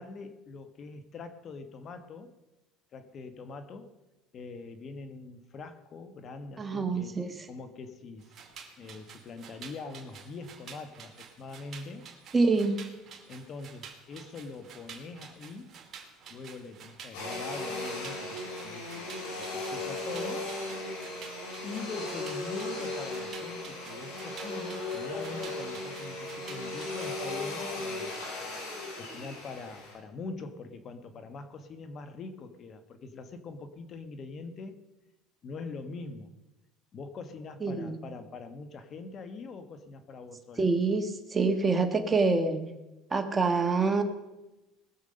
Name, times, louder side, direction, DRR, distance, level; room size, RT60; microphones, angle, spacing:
voice 1, 0.0-2.3 2.9-4.0 4.3-7.2 7.5-8.3 8.8-12.1 13.3-15.8 16.3-19.1 19.4-20.5 21.6-28.1 28.9-34.8 35.4-36.4 36.9-40.7, left 4 dB, 40° left, 10 dB, 1.3 m, -43 dB
voice 2, 6.6-7.3 12.3-12.8 37.6-37.9 40.6-42.7 43.1-44.0, right 3 dB, 20° right, 5 dB, 1.5 m, -26 dB
sound 1, 8.2-27.2, right 6 dB, 40° right, 2.3 m, -50 dB
Domestic sounds home sounds, 17.1-29.9, left 2 dB, 85° left, 5.7 m, -37 dB
20.0 x 7.2 x 5.3 m, 1.0 s
supercardioid pair, 120°, 0 cm